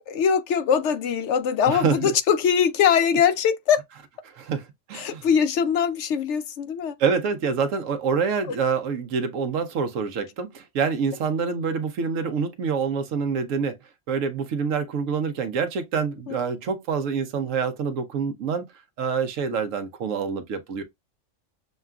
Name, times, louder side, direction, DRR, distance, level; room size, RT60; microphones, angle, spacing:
voice 1, 0.1-3.8 4.9-7.0 8.5-8.6 16.3-16.4, left 7 dB, 70° left, 0.8 m, -22 dB
voice 2, 1.7-2.1 4.3-5.2 7.0-13.8 14.1-18.7 19.0-20.8, right 6 dB, 85° right, 1.1 m, -26 dB
6.4 x 2.3 x 2.3 m
omnidirectional pair, 1.3 m